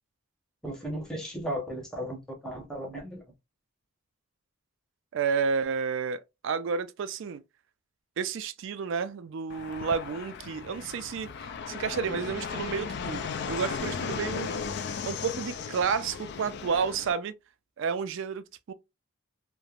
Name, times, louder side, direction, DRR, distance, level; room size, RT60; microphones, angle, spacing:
voice 1, 0.6-3.2, equal, 5° left, 0.8 m, -35 dB
voice 2, 5.1-7.4 8.2-11.3 11.7-13.2 13.5-14.5 15.0-17.3 17.8-18.7, right 6 dB, 55° right, 0.3 m, -31 dB
Fixed-wing aircraft airplane, 9.5-17.1, left 6 dB, 50° left, 0.3 m, -36 dB
3.2 x 2.1 x 2.3 m
head